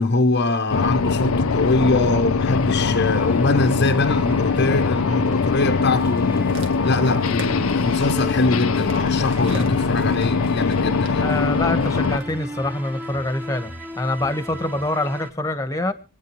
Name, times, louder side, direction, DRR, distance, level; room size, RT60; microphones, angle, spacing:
voice 1, 0.0-6.5 6.8-11.3, left 2 dB, 50° left, 0.9 m, -23 dB
The Sound Of A Bus In Motion, 0.7-12.2, left 4 dB, 70° left, 0.6 m, -21 dB
sound 1, 0.9-15.3, equal, 10° right, 1.2 m, -37 dB
sound 2, 6.0-12.3 13.1-13.2, right 2 dB, 65° right, 1.9 m, -41 dB
voice 2, 11.2-15.9, left 1 dB, 15° left, 1.2 m, -25 dB
27.5 x 9.2 x 3.1 m
head